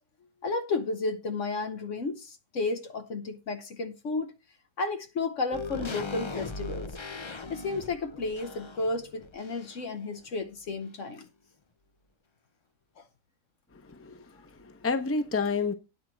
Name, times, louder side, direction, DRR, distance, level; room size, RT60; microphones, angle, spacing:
voice 1, 0.4-4.3 4.8-6.9 7.5-11.3 13.0-13.1, left 3 dB, 55° left, 1.1 m, -32 dB
sound 1, 5.5-10.0 10.3-10.4, left 3 dB, 35° left, 0.4 m, -39 dB
voice 2, 13.7-15.7, left 4 dB, 10° left, 0.8 m, -30 dB
9.6 x 4.5 x 7.5 m
omnidirectional pair, 1.6 m